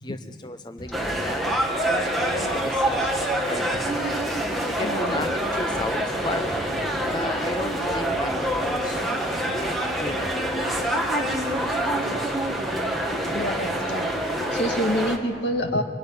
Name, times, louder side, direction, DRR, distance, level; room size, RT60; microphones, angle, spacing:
voice 1, 0.0-1.4 1.8-3.1 3.5-3.7 4.7-6.5 7.1-9.1 9.5-10.6 11.1-11.3, left 2 dB, 25° left, 8 dB, 0.6 m, -34 dB
sound 1, 0.8-12.2, equal, 50° left, 3.9 m, -42 dB
sound 2, 0.9-15.2, right 1 dB, ahead, 1.9 m, -26 dB
voice 2, 4.8-5.3 9.5-9.6 11.4-11.5 11.8-11.9 13.3-14.1 14.5-15.8, equal, 75° left, 5 dB, 2.0 m, -28 dB
24.5 x 22.0 x 9.6 m, 2.3 s
head